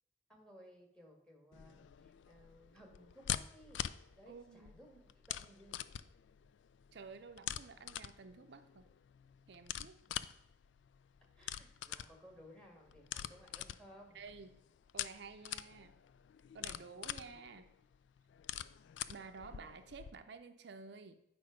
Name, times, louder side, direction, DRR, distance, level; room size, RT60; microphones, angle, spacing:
voice 1, 0.3-5.8 10.1-10.3 11.3-14.2, equal, 5° left, 1 dB, 1.6 m, -59 dB
sound 1, 1.5-20.1, left 11 dB, 85° left, 0.3 m, -45 dB
voice 2, 4.2-4.7 6.9-8.9 9.5-10.0 14.1-14.6 14.9-15.9 16.5-17.7 19.1-21.2, right 4 dB, 65° right, 8 dB, 0.5 m, -52 dB
8.7 x 5.1 x 5.0 m, 0.78 s
head